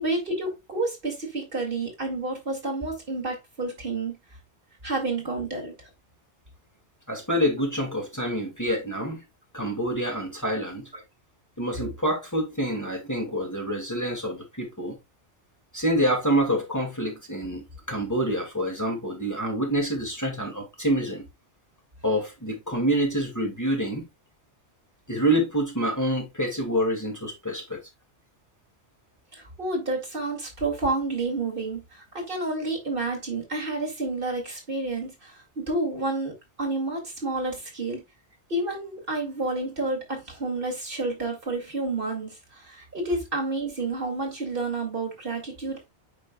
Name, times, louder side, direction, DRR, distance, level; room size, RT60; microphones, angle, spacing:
voice 1, 0.0-4.2 4.8-5.7 8.7-8.8 29.3-36.3 36.6-38.0 38.5-45.9, right 2 dB, 50° right, 2.4 m, -30 dB
voice 2, 7.1-9.2 9.5-10.9 11.6-15.0 15.7-21.3 22.0-24.0 25.1-27.8, right 1 dB, 15° left, 2.1 m, -27 dB
8.8 x 5.3 x 2.2 m
omnidirectional pair, 1.2 m